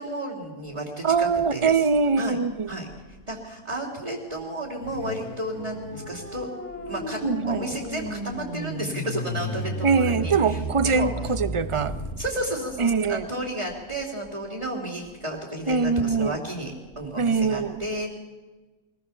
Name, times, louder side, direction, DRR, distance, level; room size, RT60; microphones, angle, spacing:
voice 1, 0.0-1.8 2.2-2.4 2.7-2.9 3.3-6.5 6.9-7.2 7.5-11.1 12.2-18.1, right 1 dB, 20° right, 3.0 m, -32 dB
voice 2, 1.0-2.7 7.2-7.7 9.8-12.0 12.8-13.3 15.7-16.4 17.2-17.8, right 5 dB, 50° right, 0.3 m, -23 dB
Car / Idling / Accelerating revving vroom, 2.6-14.7, left 6 dB, 90° left, 1.6 m, -45 dB
sound 1, 5.2-12.3, right 1 dB, 10° left, 3.0 m, -34 dB
24.0 x 19.0 x 7.0 m
omnidirectional pair, 1.7 m